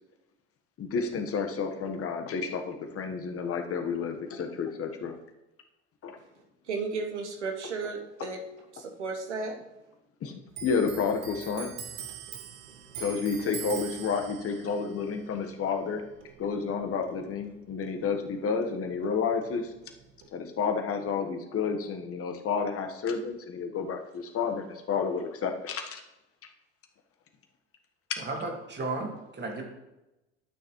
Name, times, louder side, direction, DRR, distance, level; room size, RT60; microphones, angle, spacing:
voice 1, 0.8-5.2 6.0-6.2 10.2-10.3 10.6-11.7 13.0-16.0 16.4-19.7 20.3-26.0 28.1-28.2, left 5 dB, 40° left, 4 dB, 1.3 m, -30 dB
voice 2, 6.7-8.4 8.7-9.6, right 4 dB, 90° right, 3 dB, 1.1 m, -34 dB
Clock, 10.5-17.5 17.8-19.1 19.4-20.3, right 7 dB, 65° right, 1.3 m, -43 dB
voice 3, 28.2-29.7, right 3 dB, 30° right, 1 dB, 2.3 m, -34 dB
12.0 x 6.4 x 3.1 m, 0.97 s
hypercardioid pair, 65°, 34 cm